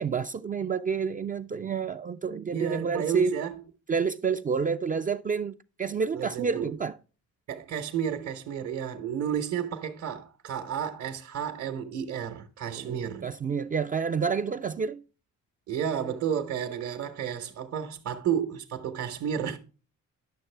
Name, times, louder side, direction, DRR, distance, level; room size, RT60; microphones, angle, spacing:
voice 1, 0.0-3.4 3.9-7.0 12.7-15.0, right 5 dB, 30° right, 0.4 m, -29 dB
voice 2, 2.5-3.6 6.1-6.7 7.5-13.3 15.7-19.6, right 8 dB, 60° right, 1.0 m, -32 dB
10.0 x 6.4 x 3.3 m
cardioid pair, 90°, 30 cm